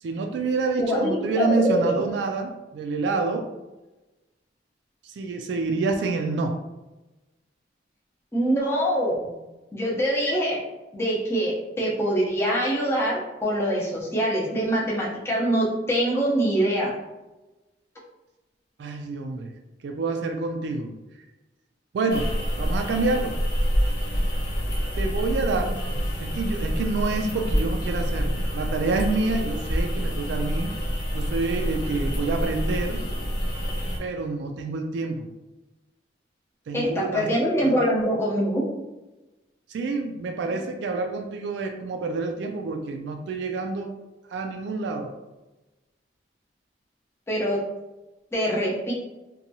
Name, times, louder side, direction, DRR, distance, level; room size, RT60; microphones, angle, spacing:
voice 1, 0.0-3.5 5.0-6.6 18.8-19.5 19.8-21.2 21.9-23.4 25.0-25.8 26.2-30.7 31.1-33.0 34.0-35.3 36.7-37.3 37.6-37.8 39.7-43.9 44.3-45.2, right 3 dB, 80° right, 4 dB, 0.3 m, -28 dB
voice 2, 0.8-1.9 8.3-9.2 9.7-10.6 10.9-16.9 36.7-38.7 47.3-47.6 48.3-48.9, equal, 15° left, -6 dB, 0.5 m, -24 dB
sound 1, 22.1-34.0, equal, 70° left, 0.6 m, -27 dB
2.8 x 2.2 x 2.6 m, 1.1 s
head